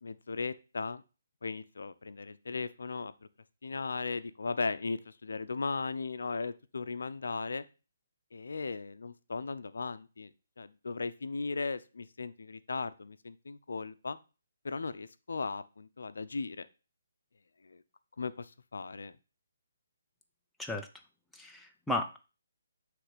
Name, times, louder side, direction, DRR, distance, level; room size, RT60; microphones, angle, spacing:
voice 1, 0.0-1.0 1.4-3.1 3.6-7.7 8.3-14.2 14.6-16.7 17.6-17.8 18.2-19.1, left 4 dB, 80° left, 12 dB, 0.6 m, -37 dB
voice 2, 21.3-22.2, left 2 dB, 5° left, 2 dB, 0.6 m, -34 dB
7.8 x 3.3 x 5.0 m, 0.32 s
hypercardioid pair, 155°, 0 cm